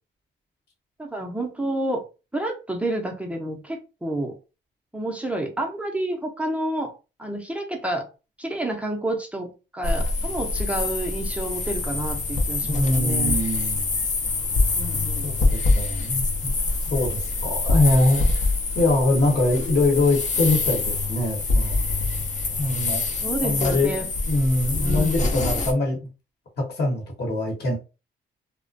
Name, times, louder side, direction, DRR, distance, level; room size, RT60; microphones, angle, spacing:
voice 1, 1.0-2.0 2.3-4.3 4.9-6.9 7.2-8.1 8.4-13.4 14.8-15.2 23.2-24.1 24.8-25.3, right 1 dB, 5° right, 1 dB, 0.6 m, -29 dB
sound 1, 9.8-25.7, left 3 dB, 40° left, 0.6 m, -25 dB
voice 2, 12.7-13.9 15.2-16.5 16.9-18.4 18.7-21.8 22.6-23.0 23.4-26.0 26.6-27.7, left 2 dB, 55° left, -1 dB, 1.1 m, -23 dB
2.3 x 2.1 x 2.5 m, 0.31 s
cardioid pair, 90°, 20 cm